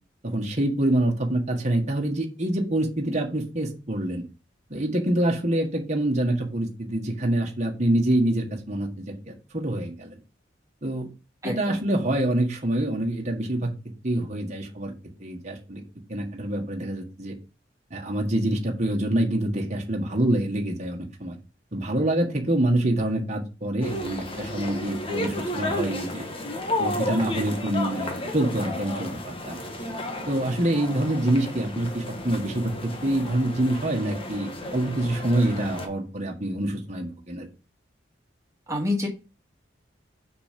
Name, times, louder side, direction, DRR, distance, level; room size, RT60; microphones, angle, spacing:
voice 1, 0.2-4.2 4.7-10.2 10.8-11.1 11.4-13.7 14.0-14.9 15.2-15.8 16.1-17.3 17.9-21.4 21.7-26.3 26.8-29.6 30.3-37.5, right 1 dB, 40° right, 0 dB, 1.6 m, -26 dB
voice 2, 11.4-11.8 38.7-39.1, left 2 dB, 15° right, -1 dB, 2.0 m, -27 dB
sound 1, 23.8-35.9, left 1 dB, 30° left, 1.3 m, -32 dB
6.1 x 6.1 x 5.2 m, 0.32 s
head